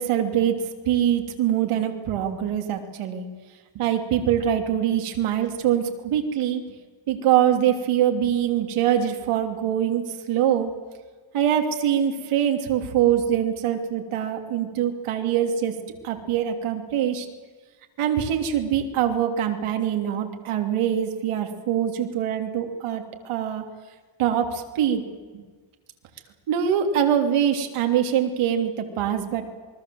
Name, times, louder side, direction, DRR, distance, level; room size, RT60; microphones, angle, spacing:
voice 1, 0.0-3.2 3.7-6.6 7.1-10.7 11.3-15.7 16.0-17.3 18.0-23.6 24.2-25.0 25.3-25.4 26.5-29.4, right 9 dB, 90° right, 4 dB, 3.2 m, -23 dB
27.5 x 21.5 x 7.8 m, 1.4 s
cardioid pair, 130°, 49 cm